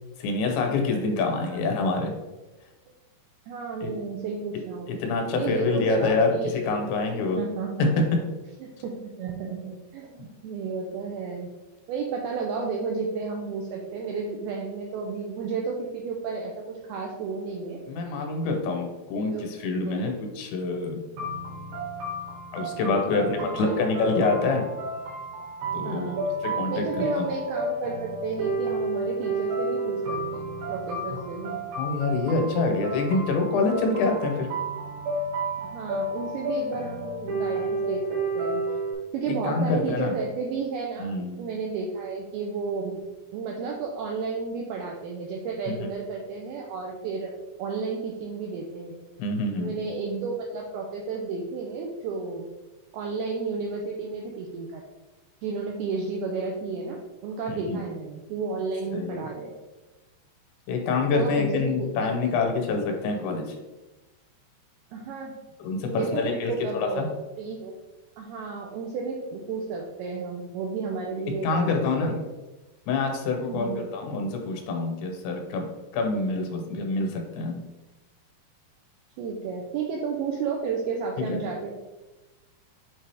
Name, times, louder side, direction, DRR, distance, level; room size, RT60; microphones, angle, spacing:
voice 1, 0.2-2.1 3.8-3.9 5.0-7.4 7.8-8.2 17.9-21.0 22.5-24.6 25.7-26.1 26.4-27.3 31.8-34.5 39.3-40.1 41.0-41.4 45.7-45.8 49.2-49.7 57.5-57.8 58.9-59.2 60.7-63.5 65.6-67.1 71.3-72.2 72.9-75.7 75.9-77.6 81.3-81.4, left 3 dB, 80° left, 3 dB, 3.1 m, -26 dB
voice 2, 1.3-1.6 3.5-4.9 5.4-6.8 7.4-7.9 8.6-11.5 11.9-17.8 19.3-19.5 19.8-20.1 23.0-23.8 25.8-26.3 26.7-31.6 35.6-38.6 39.1-42.9 43.3-47.3 47.6-49.0 49.6-52.4 52.9-54.8 55.4-59.5 61.1-62.1 64.9-65.3 65.8-67.0 67.4-67.7 68.2-72.2 73.4-73.9 79.2-81.7, right 4 dB, 85° right, 0 dB, 2.2 m, -32 dB
sound 1, 21.2-38.9, right 2 dB, 65° right, 2.8 m, -31 dB
8.2 x 3.6 x 3.3 m, 1.1 s
omnidirectional pair, 5.1 m